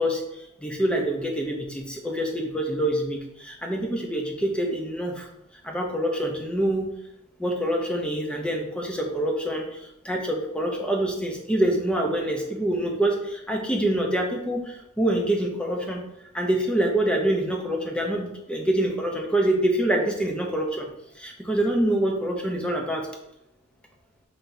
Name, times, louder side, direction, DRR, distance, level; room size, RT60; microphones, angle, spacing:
voice 1, 0.0-5.3 5.6-6.9 7.4-16.0 16.3-20.9 21.2-23.0, right 1 dB, 5° left, 1 dB, 0.6 m, -26 dB
5.7 x 3.4 x 2.7 m, 0.85 s
head